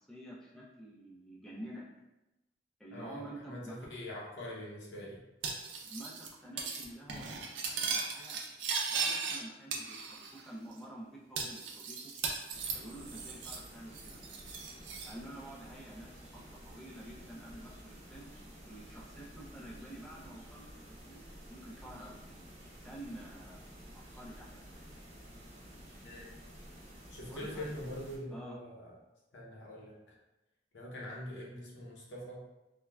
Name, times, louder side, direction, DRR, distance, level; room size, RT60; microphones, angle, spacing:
voice 1, 0.0-1.9 2.8-3.8 5.8-12.0 12.7-14.2 15.0-20.7 21.0-21.2 21.5-22.4 22.8-23.6 23.9-24.8 27.3-27.7 28.3-28.6, right 1 dB, 5° left, -5 dB, 0.4 m, -49 dB
voice 2, 2.9-5.2 26.0-26.4 27.1-28.9 29.3-29.9 30.7-32.4, left 1 dB, 85° left, -4 dB, 0.8 m, -44 dB
Cutlery silverware, 5.4-6.3 6.6-6.8 7.1-9.4 9.7-10.4 10.7-10.8 11.4-13.7 13.9-15.1, right 5 dB, 90° right, 0.4 m, -37 dB
sound 1, 12.5-28.2, equal, 35° right, 0.6 m, -52 dB
3.3 x 2.1 x 2.3 m, 0.98 s
head